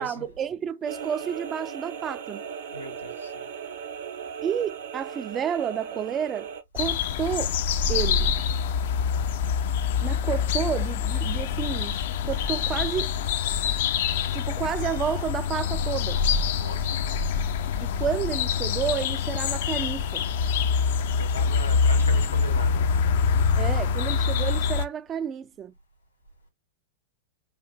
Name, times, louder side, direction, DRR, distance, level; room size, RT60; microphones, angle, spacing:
voice 1, 0.0-2.4 4.4-7.5 7.9-8.3 10.0-13.1 14.3-16.2 17.8-20.2 23.6-25.7, right 8 dB, 25° right, 0.4 m, -30 dB
sound 1, 0.9-6.6, right 7 dB, 60° right, 0.9 m, -37 dB
voice 2, 2.7-3.5 16.6-17.3 21.1-22.9, left 1 dB, 80° left, 1.8 m, -39 dB
sound 2, 6.8-24.9, left 6 dB, 55° left, 0.5 m, -25 dB
5.7 x 2.5 x 3.3 m
figure-of-eight pair, 90°, 0 cm